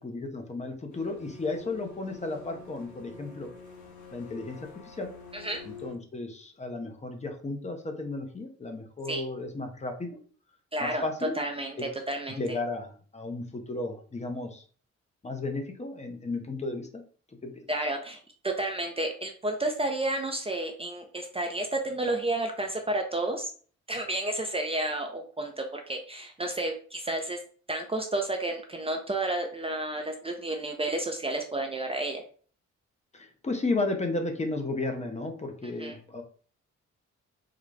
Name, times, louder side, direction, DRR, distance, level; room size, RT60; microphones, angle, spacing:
voice 1, 0.0-3.5 4.1-5.1 5.6-10.2 10.8-11.4 11.8-11.9 12.3-14.6 15.2-17.0 17.4-17.5 33.1-36.2, left 2 dB, 25° left, 4 dB, 0.6 m, -34 dB
sound 1, 0.9-5.9, left 4 dB, 85° left, 1.0 m, -47 dB
voice 2, 10.7-11.0 11.4-11.8 12.1-12.4 17.7-23.5 23.9-27.4 27.7-32.2 35.8-36.0, right 2 dB, 20° right, 3 dB, 0.5 m, -31 dB
3.8 x 2.2 x 3.2 m, 0.43 s
cardioid pair, 100°, 29 cm